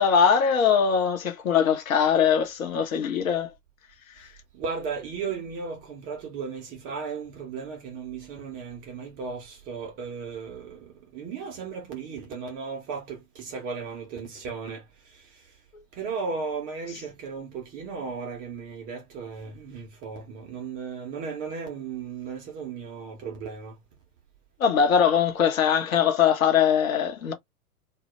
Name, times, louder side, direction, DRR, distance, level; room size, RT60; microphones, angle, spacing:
voice 1, 0.0-3.5 24.6-27.3, left 7 dB, 65° left, 0.8 m, -21 dB
voice 2, 4.6-14.8 15.1-15.2 15.9-23.8, right 5 dB, 20° right, 0.5 m, -35 dB
2.1 x 2.0 x 2.9 m
figure-of-eight pair, 100°, 44 cm